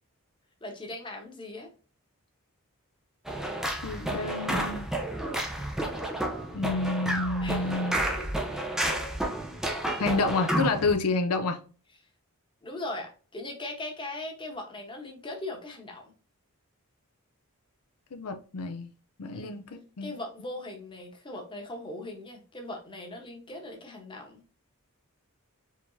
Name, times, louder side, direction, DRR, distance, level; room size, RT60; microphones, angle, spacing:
voice 1, 0.6-1.7 7.4-7.8 8.2-8.5 12.6-16.1 19.3-19.6 20.0-24.4, left 2 dB, 20° left, 1.0 m, -39 dB
sound 1, 3.3-10.9, right 1 dB, ahead, 0.6 m, -31 dB
voice 2, 3.8-4.9 6.5-8.0 10.0-11.6 18.1-18.9 19.2-20.2, left 3 dB, 85° left, 0.6 m, -29 dB
4.8 x 3.5 x 2.7 m
head